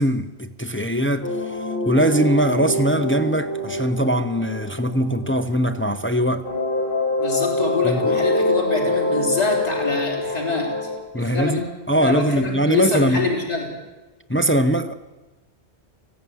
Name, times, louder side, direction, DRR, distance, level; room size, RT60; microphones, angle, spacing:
voice 1, 0.0-1.6 1.9-6.5 7.8-8.0 11.1-13.3 14.3-14.9, right 1 dB, 15° left, 0.7 m, -21 dB
sound 1, 1.2-6.1 6.4-11.0, left 2 dB, 55° left, 5.5 m, -25 dB
voice 2, 7.2-10.9 11.2-11.7 11.9-13.7, left 3 dB, 35° left, 3.8 m, -25 dB
19.0 x 15.5 x 9.5 m
omnidirectional pair, 1.1 m